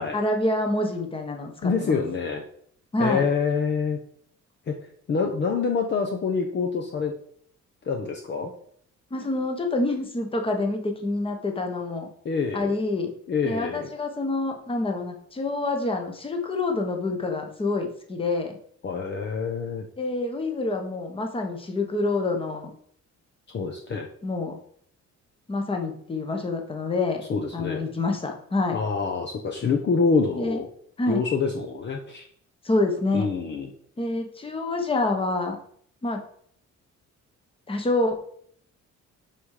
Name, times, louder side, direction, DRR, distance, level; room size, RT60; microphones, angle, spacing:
voice 1, 0.1-2.0 2.9-3.2 9.1-12.1 12.5-13.1 13.4-18.6 20.0-22.7 24.2-24.5 25.5-27.2 27.5-28.8 30.4-30.6 31.0-31.2 32.6-33.3 34.0-35.6 36.0-36.2 37.7-38.2, left 2 dB, 20° left, 3 dB, 1.3 m, -27 dB
voice 2, 1.6-2.4 3.0-4.0 4.7-4.8 5.1-7.1 7.8-8.5 12.2-12.7 13.3-13.9 18.8-19.8 23.5-24.1 27.3-27.8 28.7-30.7 31.1-32.3 33.1-33.7, left 5 dB, 35° left, 3 dB, 1.0 m, -26 dB
11.5 x 5.1 x 4.9 m, 0.64 s
cardioid pair, 170°, 30 cm